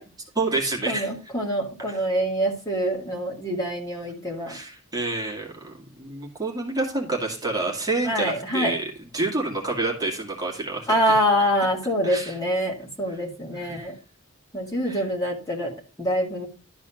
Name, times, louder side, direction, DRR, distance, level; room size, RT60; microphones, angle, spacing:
voice 1, 0.3-1.1 1.9-2.1 4.5-11.2 12.0-12.3 13.1-13.2 13.5-13.8 14.9-15.1, right 2 dB, 15° right, -1 dB, 2.2 m, -28 dB
voice 2, 0.9-4.6 8.0-8.7 10.9-13.9 14.5-15.7 16.0-16.5, equal, 15° left, -1 dB, 2.2 m, -25 dB
12.0 x 4.1 x 5.8 m, 0.32 s
head